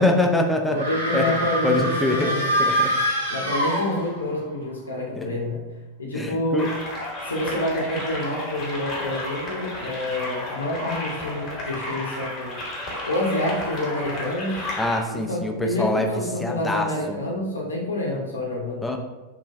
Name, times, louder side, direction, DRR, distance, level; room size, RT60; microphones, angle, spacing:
voice 1, 0.0-0.8 1.1-1.2 1.6-2.3 2.6-2.9 5.2-5.3 6.1-6.7 14.8-16.1 16.4-17.2 18.8-19.0, left 1 dB, 5° left, 2 dB, 0.3 m, -24 dB
voice 2, 0.7-2.5 3.3-5.6 6.0-6.7 7.2-12.6 13.1-14.5 15.1-18.8, left 1 dB, 75° left, -3 dB, 0.5 m, -27 dB
sound 1, 0.7-4.4, equal, 85° right, 0.6 m, -25 dB
sound 2, 6.6-15.0, left 1 dB, 30° left, 0.9 m, -32 dB
3.0 x 2.3 x 2.4 m, 1.1 s
figure-of-eight pair, 90°, 0 cm